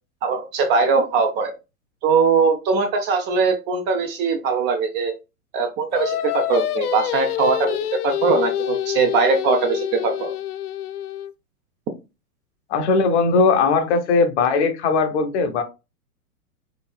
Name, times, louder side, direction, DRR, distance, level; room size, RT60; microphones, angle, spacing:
voice 1, 0.2-1.5 2.0-5.1 5.5-7.8 8.0-10.3, right 5 dB, 25° right, 5 dB, 0.7 m, -21 dB
Singing, 5.9-11.3, left 11 dB, 80° left, 0.6 m, -26 dB
voice 2, 12.7-15.6, left 4 dB, 50° left, 8 dB, 1.0 m, -19 dB
4.2 x 3.3 x 2.2 m, 0.26 s
hypercardioid pair, 120°, 45 cm